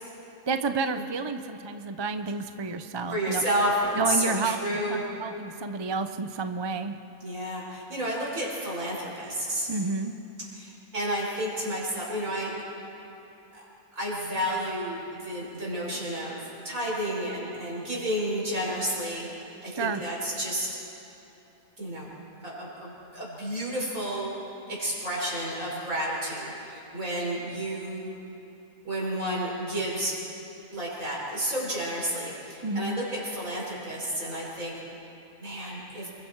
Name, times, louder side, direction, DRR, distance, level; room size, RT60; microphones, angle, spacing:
voice 1, 0.5-3.4 4.0-7.0 9.7-10.2 19.7-20.0 32.6-33.0, right 4 dB, 25° right, 8 dB, 0.6 m, -30 dB
voice 2, 3.1-5.0 7.2-9.7 10.5-12.5 13.5-13.6 13.9-19.3 19.6-20.7 21.8-22.1 22.4-24.3 24.7-28.1 28.8-30.1 30.7-34.7 35.4-36.1, right 1 dB, 75° right, -5 dB, 6.1 m, -31 dB
28.0 x 22.5 x 4.7 m, 2.9 s
omnidirectional pair, 1.4 m